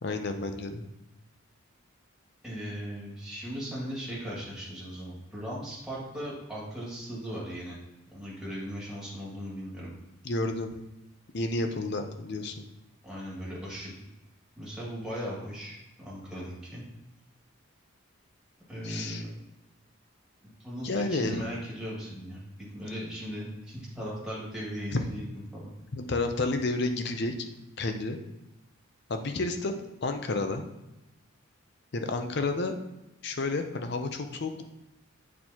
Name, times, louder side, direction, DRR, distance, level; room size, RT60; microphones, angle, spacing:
voice 1, 0.0-0.8 10.2-10.7 11.3-12.6 18.8-19.2 20.8-21.4 24.9-25.0 25.9-27.3 27.8-28.2 29.1-29.7 30.0-30.6 31.9-32.8 33.2-34.6, left 2 dB, 50° left, 6 dB, 0.6 m, -30 dB
voice 2, 2.4-7.8 8.1-9.9 13.0-14.1 14.6-16.8 18.7-19.3 20.6-22.4 22.7-25.2 25.5-25.7, equal, 5° right, -6 dB, 1.9 m, -38 dB
8.4 x 4.4 x 2.8 m, 0.94 s
head